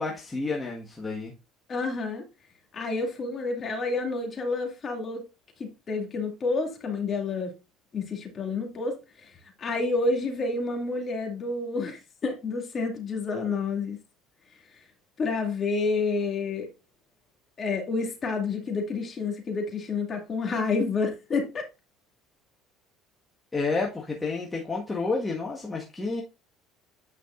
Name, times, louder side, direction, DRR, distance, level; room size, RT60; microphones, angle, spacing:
voice 1, 0.0-1.3 23.5-26.2, left 3 dB, 15° left, 1.5 m, -30 dB
voice 2, 1.7-2.2 2.7-5.2 5.6-7.5 7.9-14.0 14.7-14.8 15.2-16.7 17.6-21.7, left 3 dB, 40° left, 2.4 m, -29 dB
9.4 x 5.1 x 2.5 m
supercardioid pair, 80°, 0 cm